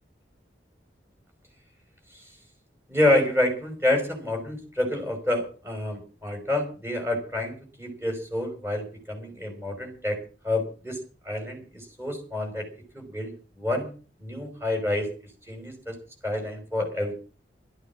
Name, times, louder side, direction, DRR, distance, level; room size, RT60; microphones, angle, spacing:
voice 1, 2.9-10.2 10.4-11.0 11.3-12.6 12.9-13.9 14.2-15.1 15.5-15.9 16.2-17.1, left 1 dB, 15° right, 4 dB, 5.6 m, -28 dB
13.0 x 11.0 x 7.3 m, 0.37 s
head